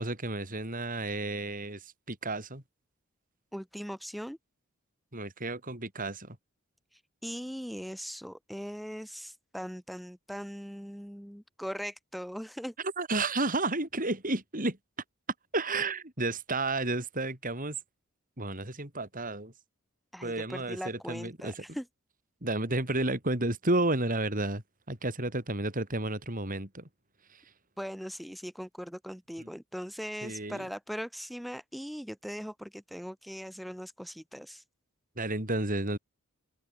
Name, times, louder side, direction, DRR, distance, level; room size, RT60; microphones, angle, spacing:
voice 1, 0.0-2.6 5.1-6.4 12.8-14.8 15.5-17.8 18.4-19.5 20.2-21.8 22.4-24.6 24.9-26.8 29.4-29.5 30.2-30.7 35.2-36.0, right 2 dB, 40° right, 5.4 m, -32 dB
voice 2, 3.5-4.4 7.2-12.7 20.1-21.8 27.8-34.6, equal, ahead, 4.2 m, -40 dB
open air
head